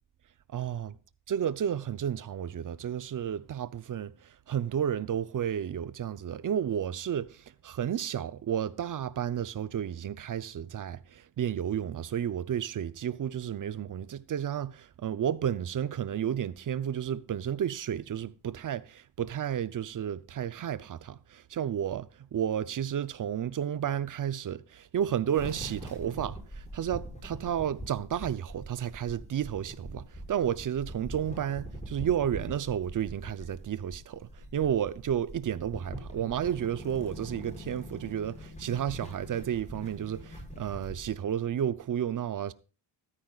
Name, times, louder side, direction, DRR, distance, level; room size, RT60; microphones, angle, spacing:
voice 1, 0.5-1.0 1.3-42.5, right 9 dB, 40° right, 0.7 m, -32 dB
sound 1, 25.3-41.1, equal, 15° left, 6.5 m, -43 dB
14.5 x 13.0 x 2.4 m
cardioid pair, 125°, 49 cm